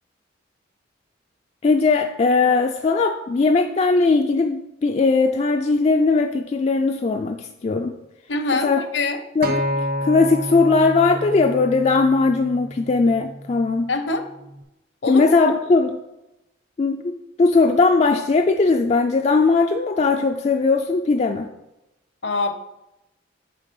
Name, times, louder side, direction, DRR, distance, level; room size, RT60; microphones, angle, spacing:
voice 1, 1.6-7.9 8.5-8.8 9.4-9.6 10.0-13.9 15.1-16.0 16.8-17.1 17.4-21.5, left 3 dB, 35° left, 4 dB, 0.3 m, -19 dB
voice 2, 8.3-9.2 13.9-14.2 15.0-15.2 22.2-22.5, left 3 dB, 60° left, 8 dB, 0.7 m, -24 dB
Acoustic guitar, 9.4-13.7 14.5-14.6, equal, 50° right, 0.6 m, -29 dB
7.7 x 3.3 x 5.3 m, 0.92 s
head